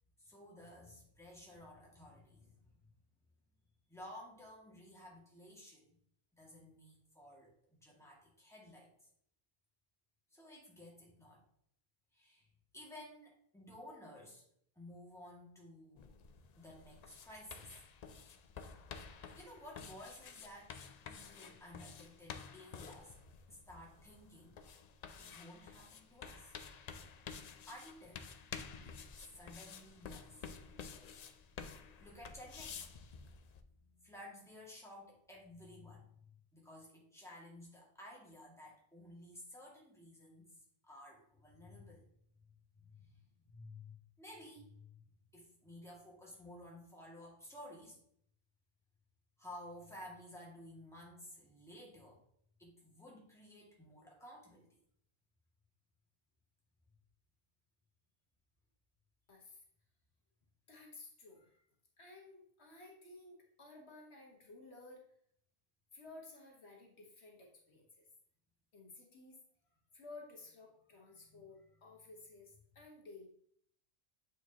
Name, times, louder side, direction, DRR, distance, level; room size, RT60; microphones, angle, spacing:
voice 1, 0.2-2.7 3.9-6.0 6.3-8.9 10.3-11.4 12.1-12.5 12.7-14.4 14.8-16.1 16.6-17.7 19.3-20.8 21.1-23.2 23.5-24.6 25.2-26.5 27.7-28.3 28.8-30.5 31.8-33.4 33.9-36.1 36.5-40.6 40.8-42.1 42.8-43.2 43.5-44.9 45.3-48.0 49.4-52.2 52.6-54.8 71.1-71.5, left 1 dB, ahead, -4 dB, 1.9 m, -54 dB
sound 1, 16.0-33.6, left 6 dB, 55° left, 0.5 m, -51 dB
voice 2, 59.3-59.6 60.7-61.6 62.0-65.0 65.9-68.1 68.7-69.4 69.9-73.3, left 3 dB, 75° left, 0 dB, 1.6 m, -55 dB
8.6 x 4.6 x 2.8 m, 0.67 s
omnidirectional pair, 1.1 m